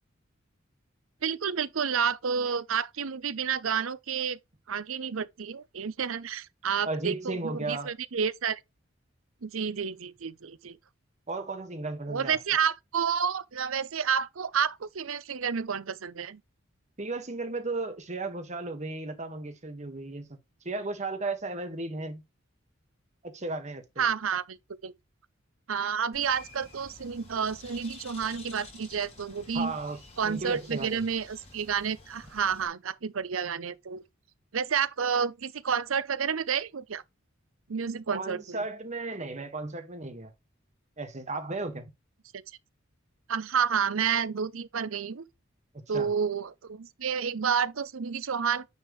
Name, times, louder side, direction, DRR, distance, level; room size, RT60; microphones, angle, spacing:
voice 1, 1.2-4.4 4.7-8.6 9.4-10.8 12.1-16.4 24.0-24.6 24.8-24.9 25.7-29.7 30.2-34.0 34.5-37.0 37.7-38.6 42.3-42.4 43.3-45.3 45.9-48.7, right 7 dB, 90° right, 0.7 m, -30 dB
voice 2, 6.8-7.9 11.3-12.4 17.0-20.4 20.6-22.2 23.3-24.1 29.5-30.0 30.2-31.0 38.1-40.3 41.0-41.9 45.7-46.1, right 3 dB, 35° right, 1.6 m, -35 dB
Bird, 26.1-32.7, left 2 dB, 30° left, 2.8 m, -50 dB
9.5 x 4.7 x 3.1 m
head